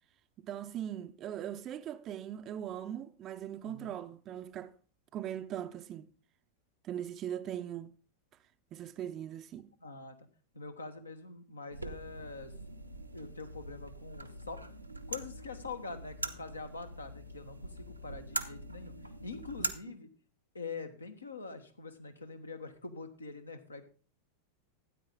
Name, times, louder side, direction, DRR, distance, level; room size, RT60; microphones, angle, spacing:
voice 1, 0.4-4.8 5.1-6.1 6.8-7.9 8.7-9.7 19.6-19.7, right 10 dB, 30° right, 0.5 m, -40 dB
voice 2, 3.6-4.0 9.8-10.3 10.5-12.5 13.1-14.7 15.1-18.9 19.2-20.1 20.5-23.8, left 4 dB, 80° left, 1.2 m, -44 dB
sound 1, 11.7-19.7, right 2 dB, 85° right, 0.8 m, -42 dB
12.5 x 9.4 x 3.7 m
figure-of-eight pair, 90°, 0 cm